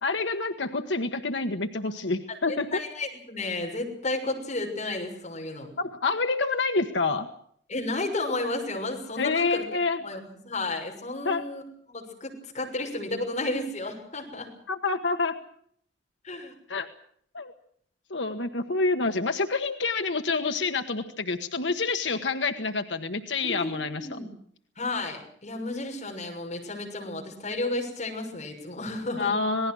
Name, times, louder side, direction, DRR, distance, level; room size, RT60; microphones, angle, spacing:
voice 1, 0.0-2.8 5.8-7.3 9.2-10.0 11.2-11.4 14.7-15.4 16.7-16.9 17.3-17.5 18.1-24.2 29.2-29.7, left 3 dB, 85° left, 6 dB, 1.3 m, -27 dB
voice 2, 2.5-5.7 7.7-9.6 10.0-11.6 11.9-14.5 16.2-16.5 23.4-24.3 24.8-29.3, left 2 dB, 40° left, 1 dB, 6.5 m, -32 dB
27.0 x 19.0 x 6.3 m, 0.63 s
head